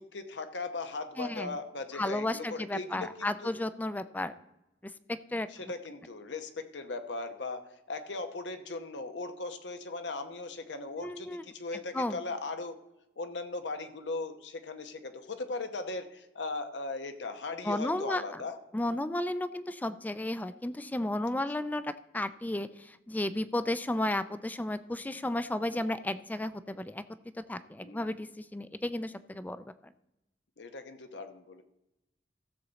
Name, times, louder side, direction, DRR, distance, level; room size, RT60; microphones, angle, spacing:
voice 1, 0.0-3.5 5.5-12.8 13.2-18.6 27.8-28.2 30.6-31.6, left 3 dB, 85° left, 8 dB, 0.9 m, -38 dB
voice 2, 1.2-1.6 1.9-4.3 5.1-5.5 11.0-11.4 11.9-12.2 17.6-18.4 18.7-27.0 27.5-29.9, left 1 dB, 10° left, 13 dB, 0.3 m, -33 dB
15.5 x 6.9 x 4.0 m, 0.93 s
head